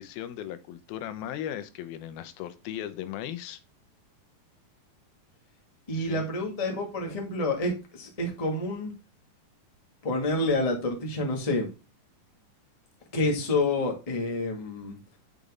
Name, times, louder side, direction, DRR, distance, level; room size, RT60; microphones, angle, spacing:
voice 1, 0.0-3.6 5.9-6.3, left 11 dB, 85° left, 2.6 m, -37 dB
voice 2, 5.9-8.9 10.0-11.7 13.1-15.0, left 2 dB, 15° left, 1.2 m, -28 dB
8.6 x 5.2 x 3.6 m
omnidirectional pair, 4.2 m